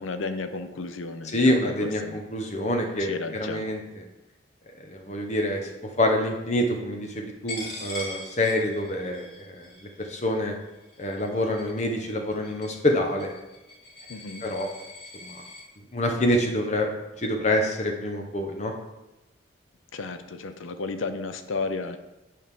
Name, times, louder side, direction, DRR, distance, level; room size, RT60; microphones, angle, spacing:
voice 1, 0.0-2.2 3.0-3.6 14.1-14.5 19.9-22.0, left 3 dB, 85° left, 9 dB, 0.6 m, -33 dB
voice 2, 1.3-3.8 4.9-5.7 6.0-10.5 11.0-13.3 14.4-14.7 15.2-15.4 15.9-16.9 17.2-18.7, left 1 dB, 35° left, 3 dB, 0.9 m, -26 dB
Coin (dropping), 7.5-15.6, left 2 dB, 55° left, 1.7 m, -42 dB
8.3 x 4.9 x 3.6 m, 1.0 s
head